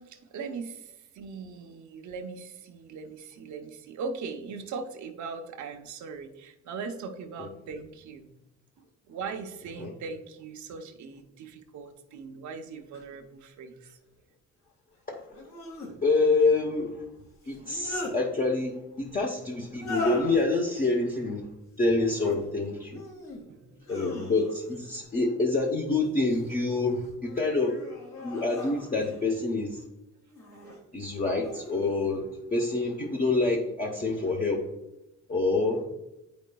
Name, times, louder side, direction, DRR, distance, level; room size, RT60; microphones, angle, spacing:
voice 1, 0.0-8.3 8.8-14.0 23.5-23.8 30.7-31.0, right 4 dB, 70° right, 5 dB, 0.8 m, -40 dB
sound 1, 12.9-13.0 15.3-15.9 17.5-18.2 19.7-20.4 21.9-22.4 22.9-23.4 23.8-24.7 26.0-26.6 27.2-29.2 30.3-30.8 31.4-31.9, left 2 dB, 65° left, 2.0 m, -39 dB
voice 2, 15.1-15.4 16.0-17.1 17.4-21.5 21.8-23.0 23.9-27.8 28.2-29.8 30.9-34.6 35.3-35.8, left 3 dB, 30° left, -2 dB, 0.9 m, -27 dB
8.2 x 5.1 x 2.3 m, 0.93 s
cardioid pair, 90°, 30 cm